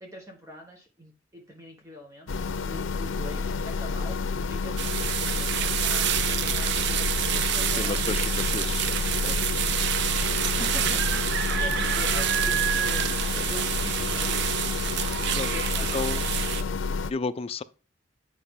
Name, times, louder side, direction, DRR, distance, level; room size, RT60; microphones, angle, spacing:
voice 1, 0.0-5.1 5.4-8.6 10.6-14.5 15.4-16.9, left 1 dB, 15° right, 1.1 m, -44 dB
sound 1, 2.3-17.1, left 4 dB, 85° left, 0.6 m, -29 dB
sound 2, 4.8-16.6, right 11 dB, 60° right, 0.4 m, -28 dB
voice 2, 7.8-8.9 9.2-9.4 13.3-13.5 15.4-15.5 15.9-16.2 17.1-17.6, left 4 dB, 30° left, 0.4 m, -32 dB
9.1 x 5.0 x 3.6 m
head